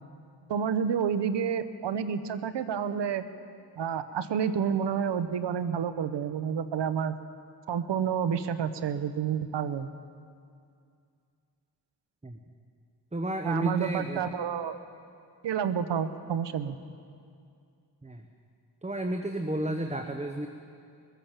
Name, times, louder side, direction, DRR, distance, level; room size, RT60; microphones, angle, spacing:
voice 1, 0.5-3.2 3.8-7.1 7.7-9.9 13.4-14.8 15.4-16.8, right 7 dB, 75° right, 12 dB, 0.8 m, -29 dB
voice 2, 13.1-14.2 18.0-18.2 18.8-20.5, right 1 dB, 15° right, 6 dB, 1.0 m, -31 dB
21.0 x 8.9 x 7.3 m, 2.3 s
supercardioid pair, 40°, 43 cm